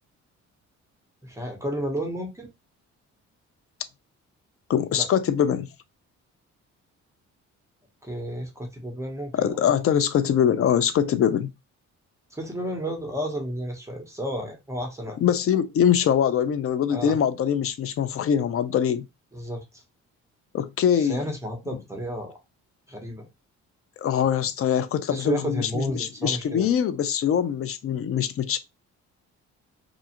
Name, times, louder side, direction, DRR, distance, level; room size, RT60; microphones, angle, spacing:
voice 1, 1.2-2.5 4.9-5.1 8.0-9.6 12.3-15.2 16.9-17.2 19.3-19.8 20.9-22.4 22.9-23.3 25.1-26.7, equal, 10° right, 0.9 m, -32 dB
voice 2, 4.7-5.7 9.3-11.5 15.2-19.1 20.5-21.2 24.0-28.6, left 8 dB, 50° left, 0.4 m, -23 dB
2.5 x 2.3 x 2.8 m
cardioid pair, 90°, 30 cm